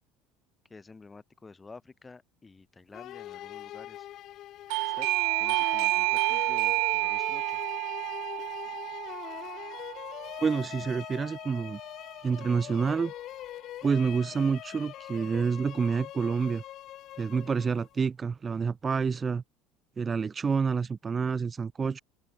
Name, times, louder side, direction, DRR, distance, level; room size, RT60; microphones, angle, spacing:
voice 1, 0.7-4.1 4.8-5.1 5.4-7.6, left 4 dB, 20° left, 6.8 m, -50 dB
sound 1, 2.9-18.0, left 13 dB, 50° left, 3.1 m, -42 dB
Doorbell, 4.7-11.2, right 29 dB, 65° right, 0.5 m, -30 dB
voice 2, 10.4-11.8 12.2-13.1 13.8-16.6 17.2-19.4 20.0-22.0, right 5 dB, 30° right, 1.1 m, -28 dB
open air
hypercardioid pair, 70°, 0 cm